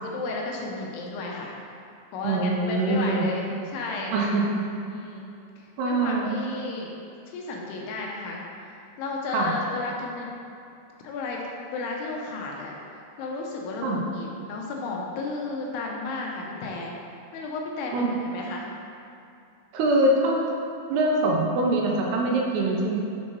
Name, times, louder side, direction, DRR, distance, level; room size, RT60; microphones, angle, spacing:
voice 1, 0.0-1.6 2.1-4.2 4.9-5.3 5.6-6.9 7.3-8.5 9.0-10.3 11.0-11.4 11.7-12.8 13.2-16.9 17.3-18.7 22.6-23.0, left 3 dB, 80° left, -1 dB, 2.6 m, -33 dB
voice 2, 2.2-3.3 4.1-4.5 5.8-6.3 9.3-9.5 13.8-14.0 17.9-18.1 19.7-20.4 20.9-23.0, right 2 dB, 90° right, -1 dB, 2.7 m, -23 dB
7.1 x 4.5 x 3.0 m, 2.6 s
omnidirectional pair, 4.8 m